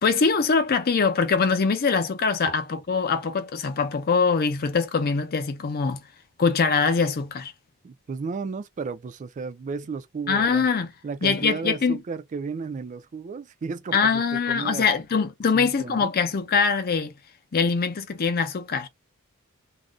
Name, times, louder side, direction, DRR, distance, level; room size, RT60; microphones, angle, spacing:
voice 1, 0.0-6.0 6.4-7.5 10.3-10.9 11.2-12.0 13.9-17.1 17.5-18.9, left 5 dB, 45° left, 0.5 m, -23 dB
voice 2, 7.8-10.7 11.0-14.9 15.5-16.1, right 5 dB, 35° right, 0.3 m, -33 dB
2.4 x 2.0 x 3.7 m
head